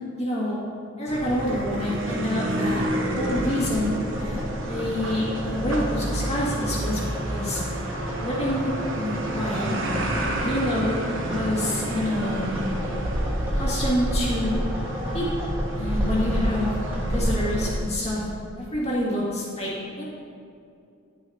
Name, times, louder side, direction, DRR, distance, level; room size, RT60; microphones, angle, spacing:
voice 1, 0.2-0.6 1.0-4.4 4.7-7.0 7.2-7.6 8.2-9.8 10.4-12.4 13.5-14.6 15.1-16.7 17.1-18.2 18.6-19.7 20.0-20.1, left 1 dB, 35° left, -7 dB, 2.2 m, -27 dB
sound 1, 1.1-17.8, right 1 dB, 70° right, 1.0 m, -28 dB
sound 2, 2.8-17.7, equal, 10° right, 1.5 m, -37 dB
10.0 x 9.4 x 2.9 m, 2.4 s
head